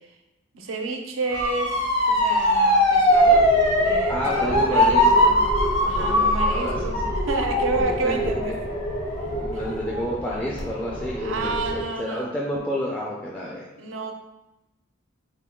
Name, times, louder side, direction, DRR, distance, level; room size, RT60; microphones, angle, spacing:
voice 1, 0.5-1.7 2.1-5.4 5.9-8.6 9.5-9.8 11.1-12.3 13.8-14.1, right 3 dB, 85° right, 4 dB, 0.5 m, -30 dB
Motor vehicle (road) / Siren, 1.3-10.2 10.6-11.1, left 1 dB, 85° left, 1.3 m, -21 dB
sound 1, 3.1-11.8, equal, 45° left, 0.7 m, -30 dB
voice 2, 4.1-5.0 6.0-6.7 8.0-8.2 9.3-13.6, equal, 5° left, -5 dB, 0.3 m, -30 dB
3.7 x 2.2 x 3.6 m, 0.97 s
head